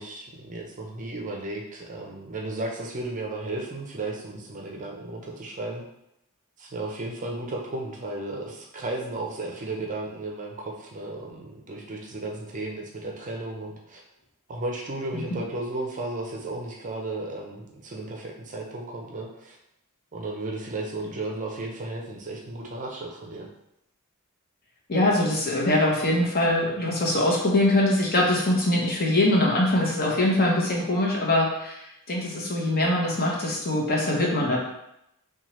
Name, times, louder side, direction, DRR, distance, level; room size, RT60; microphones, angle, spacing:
voice 1, 0.0-5.8 6.6-14.0 14.5-19.6 20.1-23.5, right 2 dB, 35° right, 0 dB, 0.5 m, -34 dB
voice 2, 24.9-34.6, left 1 dB, 45° left, -2 dB, 0.9 m, -23 dB
4.3 x 2.3 x 3.0 m, 0.83 s
head